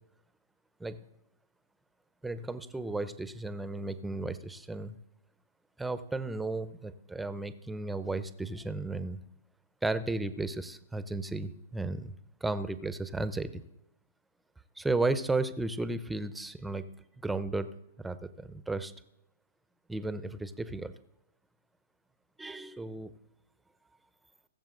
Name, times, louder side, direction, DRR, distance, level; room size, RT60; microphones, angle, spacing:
voice 1, 2.2-5.0 5.8-9.2 9.8-13.6 14.8-16.8 17.2-17.7 18.0-18.9 19.9-20.9 22.4-23.1, right 2 dB, 5° right, 13 dB, 0.7 m, -34 dB
20.5 x 7.1 x 3.9 m, 0.81 s
hypercardioid pair, 120°, 0 cm